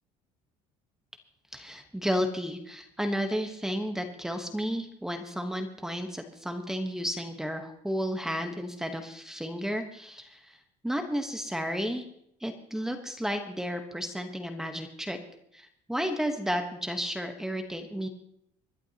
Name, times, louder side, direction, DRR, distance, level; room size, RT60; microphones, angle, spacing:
voice 1, 1.5-10.6 10.8-12.0 12.4-15.2 15.5-18.1, equal, 5° right, 5 dB, 1.1 m, -32 dB
26.0 x 11.5 x 2.9 m, 0.73 s
cardioid pair, 150°, 14 cm